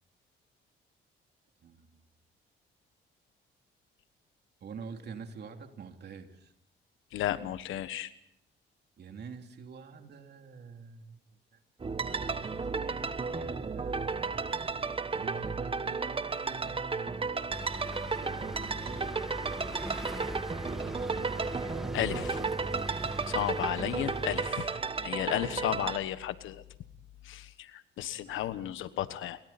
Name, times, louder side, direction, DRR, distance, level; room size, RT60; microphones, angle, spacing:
voice 1, 4.6-6.5 9.0-11.2 11.9-14.5 15.1-17.5 18.1-20.4 25.3-25.5 28.3-28.5, right 5 dB, 55° right, 5 dB, 3.1 m, -47 dB
voice 2, 7.1-8.1 21.9-22.4 23.3-26.6 27.2-29.4, left 12 dB, 85° left, 13 dB, 1.4 m, -34 dB
sound 1, 11.8-26.0, right 4 dB, 25° right, 1.2 m, -34 dB
sound 2, 17.5-24.5, right 1 dB, ahead, 1.7 m, -40 dB
29.0 x 23.5 x 4.3 m, 0.69 s
cardioid pair, 90°, 20 cm